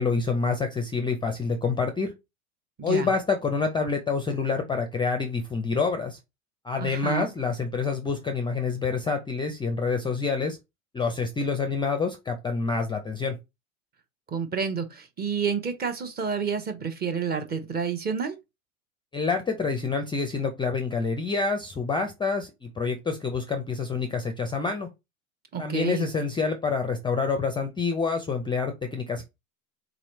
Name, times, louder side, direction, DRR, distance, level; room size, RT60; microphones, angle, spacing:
voice 1, 0.0-2.1 2.8-6.2 6.6-10.6 10.9-13.4 19.1-24.9 25.6-29.2, left 4 dB, 10° left, 0.5 m, -27 dB
voice 2, 6.8-7.3 14.3-18.4 25.5-26.1, right 6 dB, 25° right, 0.8 m, -29 dB
3.9 x 3.1 x 3.0 m
hypercardioid pair, 90°, 42 cm